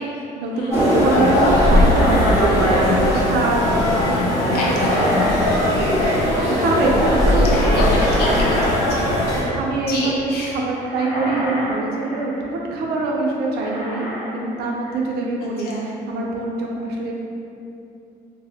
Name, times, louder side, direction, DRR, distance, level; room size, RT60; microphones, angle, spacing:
voice 1, 0.4-5.2 5.6-5.9 6.4-8.0 9.4-17.1, right 2 dB, 75° right, -2 dB, 0.5 m, -24 dB
sound 1, 0.7-9.4, left 1 dB, 20° left, 1.0 m, -18 dB
sound 2, 0.7-3.2 3.5-3.6, right 1 dB, 15° right, 0.3 m, -24 dB
sound 3, 1.5-3.2 4.5-5.5 5.7-6.3 7.8-8.7 9.0-9.6 10.8-12.5 13.6-14.4 14.7-15.2, equal, 35° left, 1.4 m, -30 dB
voice 2, 4.5-5.0 7.5-10.5 15.4-15.8, left 2 dB, 70° left, -4 dB, 0.7 m, -29 dB
2.5 x 2.1 x 3.4 m, 2.7 s
cardioid pair, 110°, 17 cm